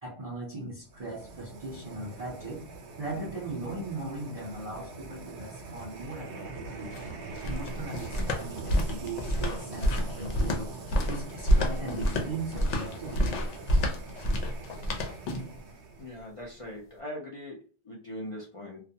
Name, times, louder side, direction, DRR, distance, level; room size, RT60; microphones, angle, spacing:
voice 1, 0.0-2.7 3.0-6.9 7.4-10.8 11.0-13.4, right 2 dB, 45° right, -3 dB, 0.5 m, -38 dB
sound 1, 0.9-16.3, right 3 dB, 70° right, 0.9 m, -43 dB
sound 2, 6.7-15.6, equal, 75° left, 0.9 m, -28 dB
voice 2, 16.0-17.5 17.9-18.8, left 1 dB, 45° left, -3 dB, 0.4 m, -40 dB
2.3 x 2.2 x 2.7 m, 0.39 s
omnidirectional pair, 1.2 m